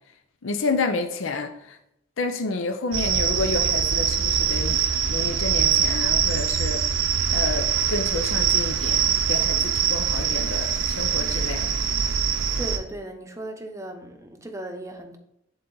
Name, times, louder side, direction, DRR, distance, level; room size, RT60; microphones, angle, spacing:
voice 1, 0.4-1.8 2.2-4.8 5.1-11.7, left 3 dB, 70° left, 0.6 m, -30 dB
sound 1, 2.9-12.8, right 7 dB, 70° right, 0.6 m, -23 dB
voice 2, 12.6-15.2, right 1 dB, 15° right, 0.7 m, -36 dB
10.0 x 4.0 x 3.9 m
head